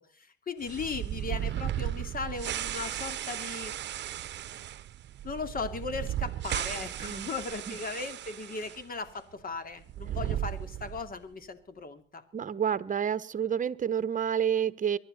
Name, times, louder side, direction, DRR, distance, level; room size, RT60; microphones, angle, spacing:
voice 1, 0.2-3.7 5.2-12.2, left 4 dB, 45° left, 2.8 m, -37 dB
sound 1, 0.6-8.8 9.1-9.2 9.8-11.2, right 12 dB, 60° right, 0.8 m, -35 dB
voice 2, 12.3-15.0, right 8 dB, 40° right, 1.1 m, -29 dB
24.0 x 11.5 x 4.2 m
cardioid pair, 90°, 20 cm